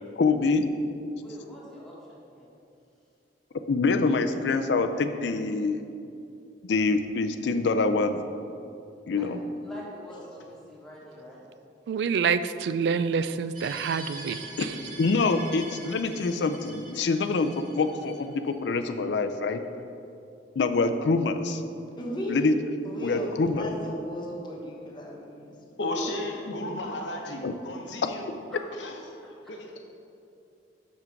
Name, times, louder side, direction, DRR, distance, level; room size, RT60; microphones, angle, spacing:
voice 1, 0.2-0.7 3.7-5.8 6.6-8.2 9.1-9.4 14.5-14.7 15.0-19.6 20.6-21.6 22.3-22.6 23.0-23.7 27.4-27.5, left 3 dB, 70° left, 8 dB, 0.4 m, -25 dB
voice 2, 1.2-2.5 9.2-9.3 9.6-11.5 28.5-28.6, equal, ahead, -7 dB, 1.6 m, -45 dB
voice 3, 11.9-14.7, right 6 dB, 65° right, 13 dB, 0.3 m, -27 dB
sound 1, 13.5-18.5, right 2 dB, 50° right, 1.4 m, -44 dB
voice 4, 22.0-22.4 22.8-25.5 26.0-26.1, equal, 25° left, -2 dB, 1.1 m, -35 dB
voice 5, 25.8-28.4 28.7-29.2 29.5-29.8, left 1 dB, 90° left, 2 dB, 0.9 m, -34 dB
6.5 x 5.9 x 4.5 m, 2.6 s
head